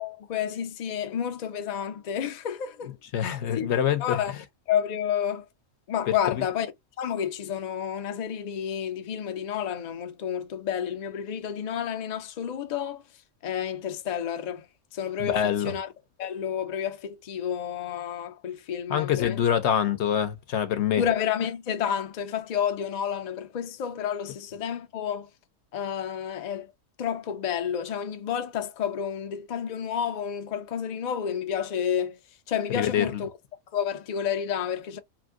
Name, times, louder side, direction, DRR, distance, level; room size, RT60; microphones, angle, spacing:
voice 1, 0.0-2.9 3.2-3.7 4.0-4.3 4.7-5.5 5.9-6.7 7.0-13.0 13.4-14.7 14.9-15.9 16.2-19.4 21.0-25.3 25.7-26.7 27.0-32.2 32.5-33.3 33.7-35.0, left 8 dB, 85° left, 0.3 m, -30 dB
voice 2, 3.1-4.4 6.3-6.5 15.2-15.8 18.9-21.0 32.7-33.2, left 9 dB, 60° left, 0.8 m, -25 dB
3.1 x 2.6 x 2.4 m
omnidirectional pair, 1.4 m